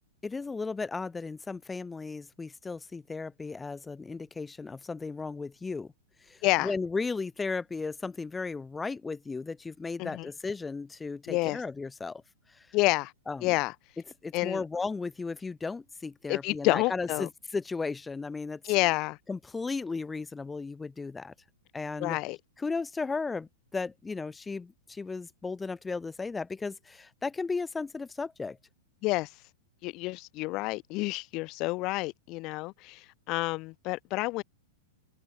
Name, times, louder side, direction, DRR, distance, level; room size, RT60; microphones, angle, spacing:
voice 1, 0.2-5.9 6.3-12.2 12.5-12.7 13.3-13.5 14.2-18.6 19.3-21.3 21.7-22.2 22.6-28.6, left 4 dB, 10° left, 4.8 m, -35 dB
voice 2, 6.4-6.7 10.0-10.3 11.3-11.6 12.7-13.1 13.4-13.7 14.3-14.6 16.3-17.3 18.6-19.2 22.0-22.4 29.0-29.4 29.8-34.4, left 22 dB, 35° left, 0.7 m, -29 dB
supercardioid pair, 150°, 0 cm